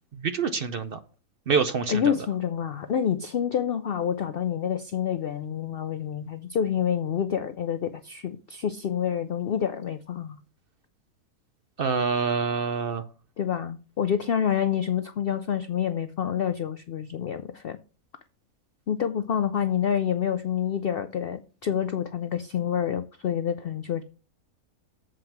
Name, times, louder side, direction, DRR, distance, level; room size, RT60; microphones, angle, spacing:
voice 1, 0.2-1.0 1.5-2.2 11.8-13.0, right 5 dB, 60° right, 9 dB, 0.6 m, -26 dB
voice 2, 1.9-10.4 13.4-17.8 18.9-24.0, left 8 dB, 90° left, 11 dB, 0.5 m, -28 dB
7.6 x 4.8 x 5.8 m, 0.35 s
omnidirectional pair, 1.6 m